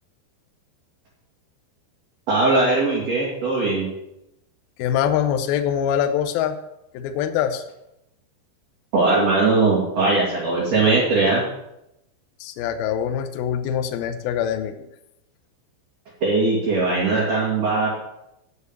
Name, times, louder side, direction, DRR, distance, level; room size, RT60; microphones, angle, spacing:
voice 1, 2.3-3.9 8.9-11.4 16.2-17.9, right 3 dB, 45° right, -5 dB, 2.6 m, -20 dB
voice 2, 4.8-6.6 6.9-7.6 12.4-14.9, left 9 dB, 80° left, 8 dB, 2.2 m, -24 dB
8.2 x 7.6 x 8.1 m, 0.84 s
omnidirectional pair, 5.5 m